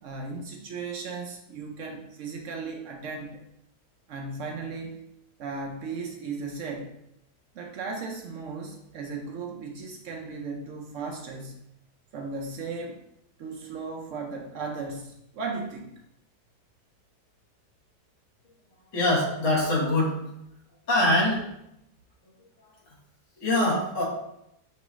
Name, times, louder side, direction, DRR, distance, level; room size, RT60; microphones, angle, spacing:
voice 1, 0.0-3.4 4.1-5.0 5.4-6.9 7.5-11.6 12.1-13.0 13.4-15.9, right 4 dB, 70° right, 1 dB, 0.7 m, -36 dB
voice 2, 18.9-20.2 20.9-21.4 23.4-24.0, left 1 dB, 50° left, -3 dB, 1.6 m, -23 dB
4.7 x 3.0 x 3.0 m, 0.80 s
omnidirectional pair, 1.8 m